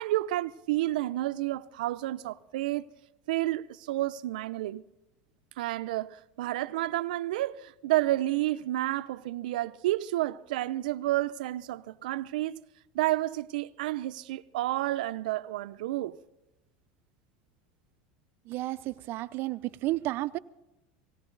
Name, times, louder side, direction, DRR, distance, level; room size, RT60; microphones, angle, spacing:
voice 1, 0.0-2.8 3.3-4.8 5.6-12.6 12.9-16.2, right 16 dB, 85° right, 0.6 m, -30 dB
voice 2, 18.5-20.4, right 17 dB, 50° right, 0.6 m, -32 dB
18.5 x 17.0 x 4.0 m
supercardioid pair, 125°, 4 cm